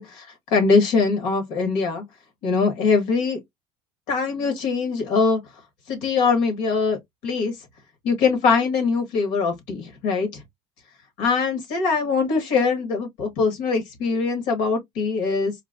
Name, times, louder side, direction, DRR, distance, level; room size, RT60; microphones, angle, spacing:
voice 1, 0.0-2.0 2.4-3.4 4.1-5.4 5.9-7.6 8.0-10.4 11.2-15.5, left 4 dB, 65° left, 1.8 m, -22 dB
4.5 x 2.2 x 2.5 m
cardioid pair, 175°, 13 cm